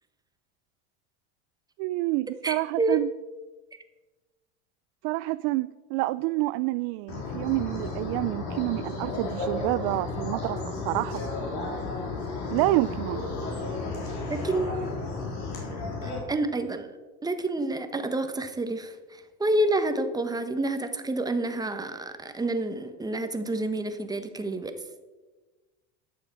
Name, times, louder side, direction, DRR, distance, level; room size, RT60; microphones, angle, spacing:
voice 1, 1.8-3.1 5.0-11.3 12.5-13.2, right 20 dB, 65° right, 15 dB, 0.5 m, -28 dB
voice 2, 2.4-3.0 14.3-14.7 15.7-17.0 17.2-24.7, right 2 dB, 10° right, 8 dB, 1.2 m, -29 dB
sound 1, 7.1-16.2, left 3 dB, 60° left, 4.1 m, -33 dB
12.0 x 7.2 x 7.0 m, 1.2 s
supercardioid pair, 125°, 33 cm